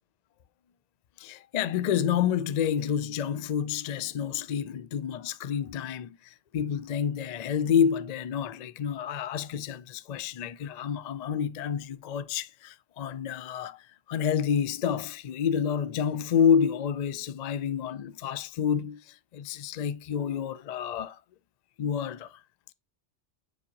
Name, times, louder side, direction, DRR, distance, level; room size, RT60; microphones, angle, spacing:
voice 1, 1.2-13.8 14.1-21.2 21.8-22.4, left 8 dB, 65° left, 0.4 m, -29 dB
7.2 x 4.7 x 2.8 m
omnidirectional pair, 1.2 m